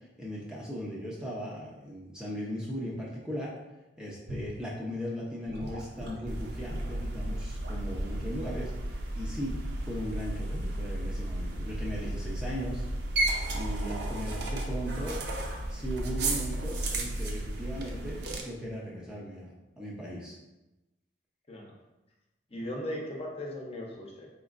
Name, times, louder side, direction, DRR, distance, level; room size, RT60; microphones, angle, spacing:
voice 1, 0.2-3.5 4.0-12.8 13.5-15.2 15.7-20.4, equal, 5° right, -5 dB, 0.6 m, -38 dB
Gurgling / Sink (filling or washing) / Liquid, 4.3-4.6 5.5-8.2 8.5-8.8 9.3-9.6 10.5-10.7, equal, 80° right, 1.0 m, -42 dB
sound 1, 6.3-18.4, right 1 dB, 65° right, 0.6 m, -33 dB
voice 2, 22.5-24.3, left 1 dB, 35° left, -2 dB, 0.8 m, -37 dB
4.3 x 4.0 x 2.5 m, 1.0 s
head